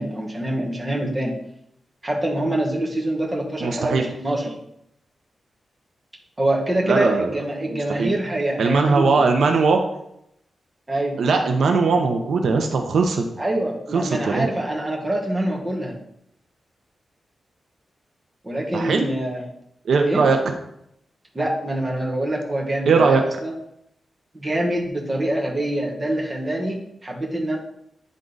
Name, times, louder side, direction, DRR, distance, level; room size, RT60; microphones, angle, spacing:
voice 1, 0.0-1.3 2.0-4.6 6.4-9.3 10.9-11.2 13.4-16.0 18.4-19.4 20.0-20.3 21.3-23.5 24.3-27.6, right 1 dB, 15° right, -1 dB, 1.2 m, -25 dB
voice 2, 3.6-4.0 6.8-7.3 7.7-8.1 8.6-9.8 11.2-13.2 13.9-14.5 18.7-19.1 19.8-20.5 22.9-23.2, right 4 dB, 75° right, 4 dB, 0.7 m, -19 dB
9.3 x 3.7 x 3.9 m, 0.77 s
wide cardioid pair, 175°, 0 cm